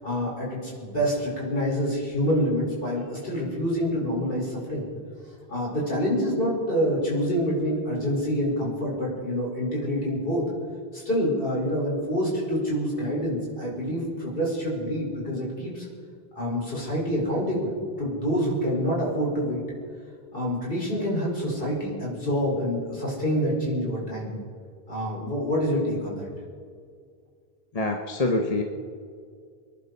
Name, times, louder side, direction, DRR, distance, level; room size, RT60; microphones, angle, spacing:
voice 1, 0.0-4.9 5.5-10.4 10.9-15.9 16.4-19.6 20.3-24.3 24.9-26.3, equal, 60° left, -5 dB, 5.5 m, -27 dB
voice 2, 27.7-28.6, left 2 dB, 40° left, 2 dB, 1.2 m, -25 dB
26.0 x 11.0 x 4.2 m, 2.1 s
omnidirectional pair, 1.0 m